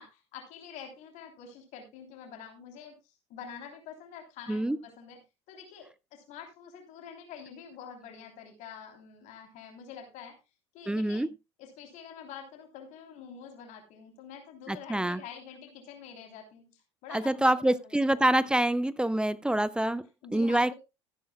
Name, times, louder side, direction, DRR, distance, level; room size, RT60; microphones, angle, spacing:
voice 1, 0.0-5.2 5.5-10.4 10.7-11.2 11.6-18.3 20.2-20.7, left 7 dB, 55° left, 3.2 m, -47 dB
voice 2, 10.9-11.3 14.7-15.2 17.1-20.0 20.3-20.7, right 1 dB, 5° right, 0.6 m, -26 dB
14.5 x 12.0 x 2.2 m
figure-of-eight pair, 70°, 15 cm